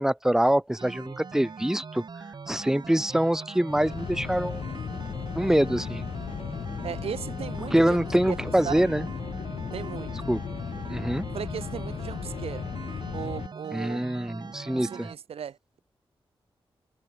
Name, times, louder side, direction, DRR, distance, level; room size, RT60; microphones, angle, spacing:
voice 1, 0.0-2.0 2.5-4.7 5.3-6.1 7.7-9.1 10.3-10.4 10.9-11.3 13.7-15.1, right 1 dB, 5° right, 0.8 m, -25 dB
sound 1, 0.8-15.2, right 5 dB, 50° right, 0.6 m, -42 dB
sound 2, 3.7-13.5, left 7 dB, 70° left, 0.5 m, -36 dB
voice 2, 6.8-8.0 8.3-8.4 8.6-8.8 9.7-10.3 11.3-12.7 13.1-14.0 14.7-15.8, right 8 dB, 85° right, 0.7 m, -36 dB
cardioid pair, 50°, 10 cm